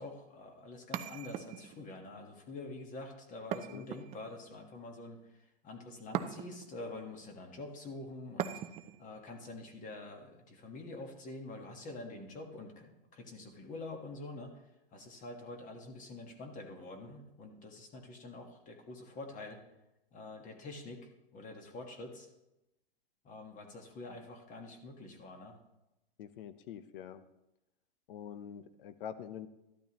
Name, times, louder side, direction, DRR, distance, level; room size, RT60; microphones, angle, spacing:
voice 1, 0.0-8.6 9.0-14.5 14.9-19.6 20.1-22.3 23.2-25.6, left 2 dB, 25° left, 3 dB, 1.6 m, -46 dB
sound 1, 0.9-1.9 3.5-4.5 6.1-6.8 8.4-9.0, right 10 dB, 20° right, 0.5 m, -39 dB
voice 2, 3.6-3.9 26.2-27.2 28.1-29.5, left 9 dB, 65° left, 12 dB, 1.0 m, -45 dB
13.0 x 12.0 x 3.1 m, 0.94 s
hypercardioid pair, 135°, 30 cm